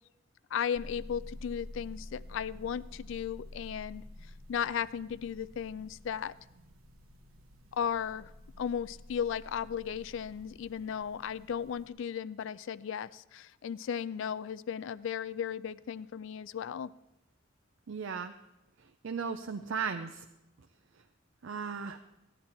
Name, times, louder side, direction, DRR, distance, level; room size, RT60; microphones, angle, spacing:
voice 1, 0.5-4.0 4.5-6.3 7.7-8.3 8.6-16.9, left 8 dB, 65° left, 17 dB, 0.3 m, -35 dB
sound 1, 0.7-11.9, left 1 dB, 85° right, 1.1 m, -50 dB
voice 2, 17.9-18.3 18.8-20.2 21.4-22.0, right 6 dB, 65° right, 7 dB, 0.5 m, -36 dB
15.0 x 10.5 x 4.3 m, 0.97 s
head